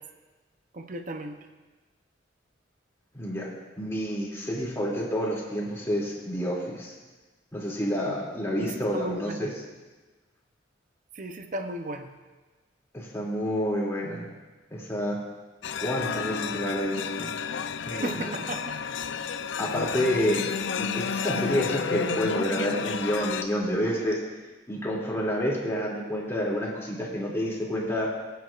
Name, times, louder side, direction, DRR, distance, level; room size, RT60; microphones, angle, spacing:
voice 1, 0.7-1.3 8.5-9.5 11.2-12.1 17.9-18.8, right 1 dB, 45° right, 6 dB, 0.7 m, -35 dB
voice 2, 3.1-3.5 3.8-6.9 7.5-9.6 12.9-14.3 14.7-15.2 15.8-17.3 17.9-18.4 19.6-20.5 20.8-24.2 24.7-28.1, equal, 15° left, -5 dB, 2.5 m, -29 dB
sound 1, 15.6-23.4, left 6 dB, 75° left, 0.5 m, -31 dB
19.0 x 9.3 x 2.5 m, 1.3 s
head